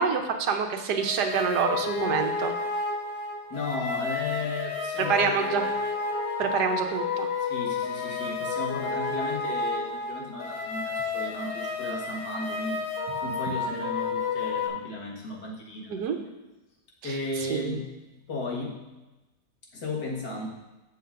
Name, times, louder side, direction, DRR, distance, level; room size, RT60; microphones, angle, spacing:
voice 1, 0.0-2.5 5.0-5.6 6.4-7.3 15.9-16.2 17.0-17.8, right 6 dB, 80° right, 5 dB, 1.4 m, -27 dB
sound 1, 1.0-14.7, left 4 dB, 40° left, 1.3 m, -31 dB
voice 2, 3.5-5.7 7.4-12.8 13.2-16.2 17.0-18.0 18.3-18.8 19.7-20.5, left 2 dB, 80° left, -3 dB, 2.2 m, -35 dB
12.5 x 6.9 x 2.6 m, 1.1 s
omnidirectional pair, 1.8 m